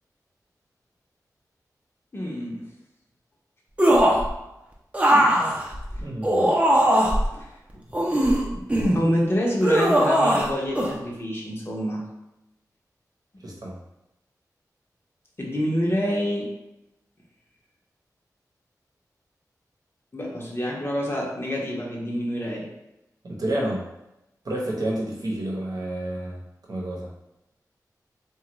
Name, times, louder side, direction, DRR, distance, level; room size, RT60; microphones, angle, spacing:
voice 1, 2.1-2.6 5.1-5.4 5.9-6.0 6.3-6.8 7.3-7.5 7.7-8.0 8.5-8.6 8.9-12.0 15.4-16.5 20.1-22.7, equal, 35° left, -3 dB, 0.8 m, -27 dB
sound 1, 3.8-4.3 4.9-7.3 7.9-9.0 9.6-10.5 10.8-10.9, equal, 20° right, 0.6 m, -19 dB
voice 2, 6.0-6.4 13.4-13.8 23.2-23.9 24.4-26.4 26.7-27.1, right 1 dB, 65° right, -3 dB, 0.8 m, -29 dB
3.0 x 2.3 x 3.0 m, 0.91 s
cardioid pair, 50°, 7 cm